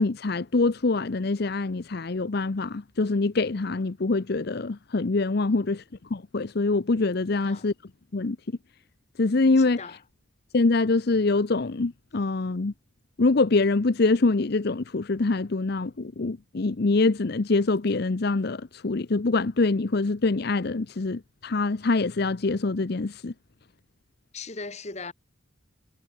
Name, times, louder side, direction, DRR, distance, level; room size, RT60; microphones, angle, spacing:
voice 1, 0.0-5.8 6.1-7.7 8.1-8.4 9.2-10.0 10.5-12.7 13.2-23.3, left 3 dB, 55° left, 0.7 m, -24 dB
voice 2, 7.3-7.7 9.6-10.0 24.3-25.1, left 4 dB, 35° left, 1.8 m, -39 dB
head